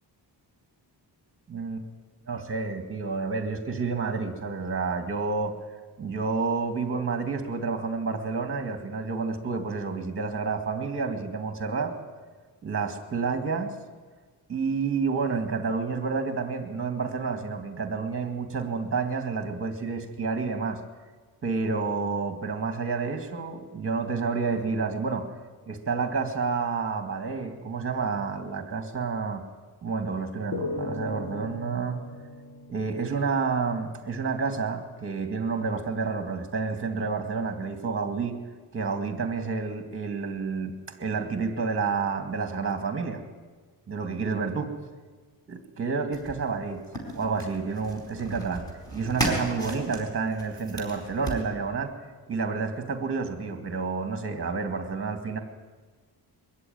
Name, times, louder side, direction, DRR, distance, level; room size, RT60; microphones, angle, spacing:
voice 1, 1.5-1.8 2.3-5.6 6.0-11.9 12.6-13.7 14.5-20.8 21.4-25.3 25.6-29.4 29.8-32.0 32.7-38.4 38.7-40.7 41.0-43.2 43.9-44.7 45.5-46.8 47.1-51.9 52.3-55.4, right 4 dB, 30° right, 6 dB, 2.2 m, -29 dB
sound 1, 30.5-33.9, left 2 dB, 45° left, 3.0 m, -37 dB
sound 2, 46.1-51.5, right 1 dB, 10° left, 4.6 m, -35 dB
22.0 x 14.5 x 9.3 m, 1.4 s
wide cardioid pair, 175°, 42 cm